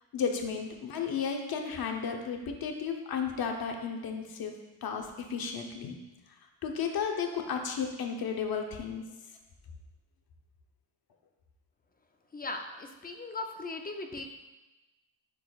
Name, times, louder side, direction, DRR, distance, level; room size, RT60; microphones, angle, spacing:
voice 1, 0.1-4.5 4.8-6.0 6.6-9.0, left 6 dB, 45° left, 3 dB, 0.8 m, -33 dB
voice 2, 12.3-14.2, left 3 dB, 20° left, 4 dB, 0.4 m, -38 dB
10.5 x 3.9 x 2.4 m, 1.1 s
cardioid pair, 130°, 49 cm